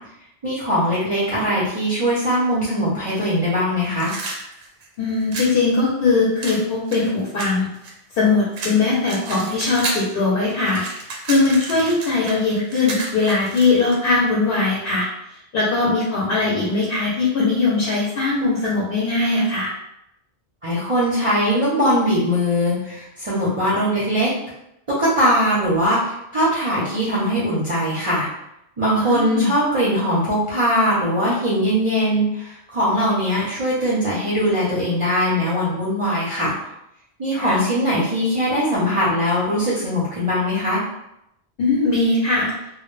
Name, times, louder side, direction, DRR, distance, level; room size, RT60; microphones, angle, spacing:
voice 1, 0.4-4.1 20.6-24.3 24.9-28.3 28.8-36.6 37.2-40.8, equal, 35° right, -9 dB, 0.6 m, -21 dB
sound 1, 3.9-5.6 6.4-8.2 8.5-10.1 10.4-14.0, right 3 dB, 85° right, 0.9 m, -31 dB
voice 2, 5.0-7.7 8.1-10.8 11.3-19.7 28.9-29.5 37.3-37.6 41.6-42.5, left 3 dB, 65° left, -5 dB, 0.8 m, -20 dB
2.1 x 2.1 x 3.0 m, 0.82 s
omnidirectional pair, 1.1 m